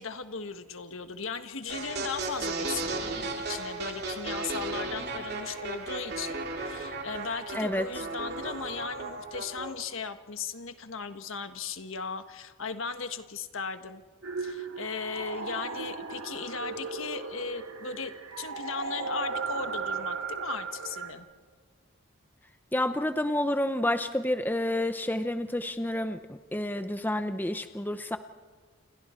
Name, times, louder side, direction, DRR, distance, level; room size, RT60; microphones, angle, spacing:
voice 1, 0.0-14.0 14.4-21.3, left 5 dB, 70° left, 9 dB, 1.5 m, -37 dB
sound 1, 1.7-9.7, right 3 dB, 50° right, 3.0 m, -35 dB
voice 2, 7.5-7.9 22.7-28.2, left 1 dB, 10° left, 9 dB, 0.7 m, -29 dB
sound 2, 14.2-21.1, right 4 dB, 85° right, 2.5 m, -36 dB
29.5 x 29.0 x 4.5 m, 1.5 s
head